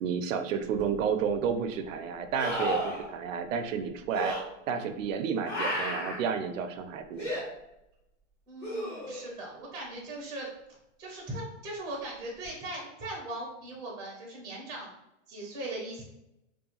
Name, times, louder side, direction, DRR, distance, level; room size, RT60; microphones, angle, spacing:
voice 1, 0.0-4.4 4.7-7.4, right 6 dB, 85° right, 9 dB, 0.5 m, -31 dB
sound 1, 0.8-0.9 2.4-3.0 4.1-4.4 5.5-6.2 7.2-7.4 8.6-9.3 12.4-12.5, equal, 45° left, 1.1 m, -32 dB
voice 2, 8.5-10.5 11.0-14.9 15.3-16.0, right 1 dB, 10° right, -2 dB, 0.5 m, -39 dB
2.7 x 2.2 x 2.8 m, 0.87 s
hypercardioid pair, 145°, 38 cm